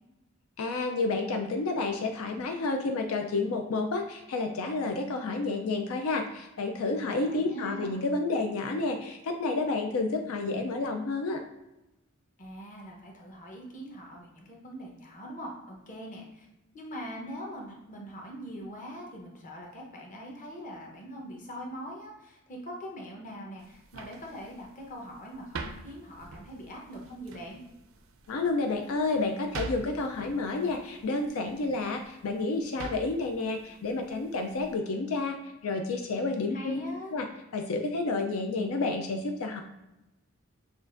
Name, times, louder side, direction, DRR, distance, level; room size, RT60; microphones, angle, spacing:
voice 1, 0.6-11.4 28.3-35.4 35.6-36.8 37.1-37.3 37.5-39.6, left 3 dB, 85° left, 4 dB, 0.4 m, -30 dB
voice 2, 7.0-8.0 12.4-16.5 16.7-27.6 36.5-37.1, equal, 35° left, -1 dB, 0.9 m, -42 dB
sound 1, 23.6-34.8, right 3 dB, 65° right, 0.4 m, -46 dB
6.3 x 2.4 x 2.5 m, 0.94 s
head